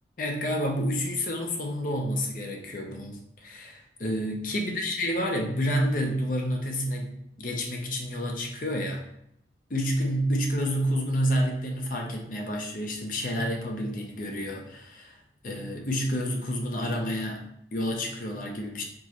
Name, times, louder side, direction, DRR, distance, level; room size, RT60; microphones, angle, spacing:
voice 1, 0.2-9.0 9.7-15.2 15.4-18.8, equal, 50° left, 2 dB, 0.7 m, -29 dB
4.5 x 3.1 x 2.9 m, 0.74 s
head